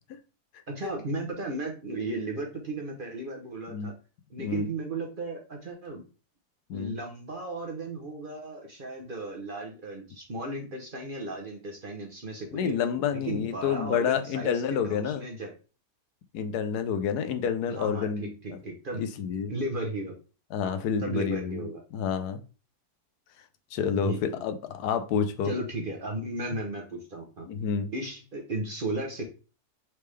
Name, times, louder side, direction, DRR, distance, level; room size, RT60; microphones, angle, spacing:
voice 1, 0.7-3.9 4.3-6.0 6.7-12.8 13.1-15.5 17.7-19.0 19.5-20.2 20.6-21.8 23.9-24.4 25.4-27.5 27.9-29.2, right 2 dB, 40° right, 1 dB, 0.9 m, -35 dB
voice 2, 12.5-15.2 16.3-18.6 19.0-19.5 20.5-21.7 21.9-22.4 23.7-25.5 27.4-27.9, left 7 dB, 85° left, 8 dB, 1.2 m, -29 dB
4.4 x 3.4 x 3.2 m, 0.34 s
omnidirectional pair, 1.7 m